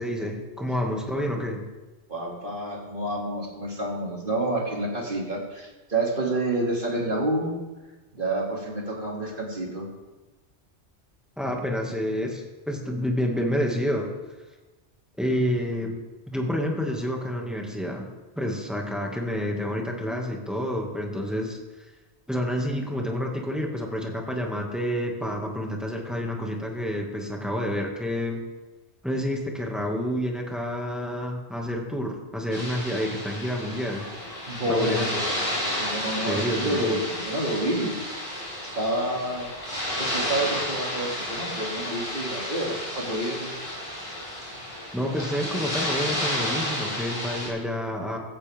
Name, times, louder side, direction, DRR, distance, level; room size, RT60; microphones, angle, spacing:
voice 1, 0.0-1.6 11.4-14.1 15.2-16.0 16.3-18.1 18.4-21.6 22.3-28.4 29.0-34.1 34.7-35.1 36.2-37.0 44.9-48.2, equal, ahead, 0 dB, 2.1 m, -29 dB
voice 2, 2.1-7.5 8.1-9.9 34.4-35.2 35.7-38.2 38.6-39.5 40.0-43.6, right 1 dB, 50° right, -2 dB, 3.0 m, -29 dB
sound 1, 32.5-47.5, left 1 dB, 30° left, 5.7 m, -31 dB
16.0 x 14.5 x 3.6 m, 1.2 s
omnidirectional pair, 1.2 m